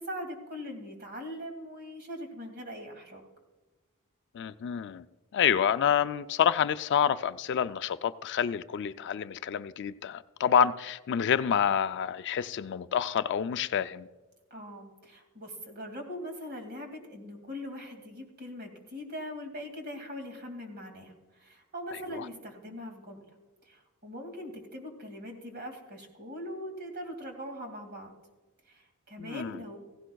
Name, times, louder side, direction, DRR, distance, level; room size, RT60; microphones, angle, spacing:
voice 1, 0.0-3.2 14.5-23.3 23.7-28.1 28.7-29.8, equal, 45° right, 2.3 m, -41 dB
voice 2, 4.3-5.0 5.3-14.1 22.1-22.3 29.2-29.6, left 8 dB, 55° left, 0.3 m, -28 dB
16.5 x 16.0 x 2.3 m
head